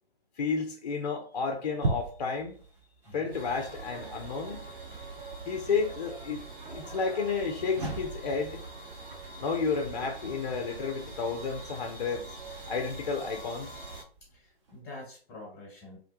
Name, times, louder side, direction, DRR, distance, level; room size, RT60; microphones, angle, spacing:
voice 1, 0.4-2.6 3.1-4.6 5.5-8.6 9.4-12.2 12.7-13.7, left 5 dB, 45° left, 0.4 m, -31 dB
sound 1, 1.3-5.6 7.3-14.8, right 2 dB, 30° right, 0.5 m, -41 dB
sound 2, 3.3-14.0, right 3 dB, 55° right, 1.2 m, -43 dB
voice 2, 14.3-16.0, left 2 dB, 15° left, 1.1 m, -46 dB
2.4 x 2.2 x 2.7 m
figure-of-eight pair, 130°, 31 cm